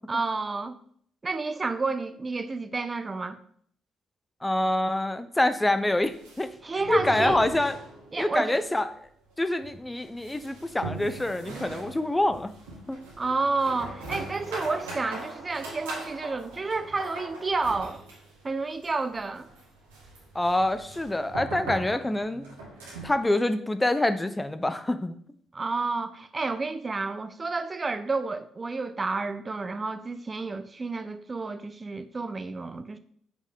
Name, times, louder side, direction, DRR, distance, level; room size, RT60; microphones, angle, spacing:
voice 1, 0.1-0.8 1.2-3.4 6.6-7.4 8.1-8.6 13.2-18.0 18.4-19.5 25.5-33.0, right 3 dB, 30° right, 0.5 m, -30 dB
voice 2, 4.4-6.5 6.9-7.8 8.2-8.9 9.4-12.5 12.9-13.0 20.3-22.4 23.0-25.2, left 1 dB, 15° left, 0.6 m, -26 dB
sound 1, 6.0-8.4 8.6-8.7 9.0-9.1 9.6-23.2, right 2 dB, 85° right, 1.9 m, -40 dB
6.1 x 5.4 x 3.7 m
hypercardioid pair, 45°, 0 cm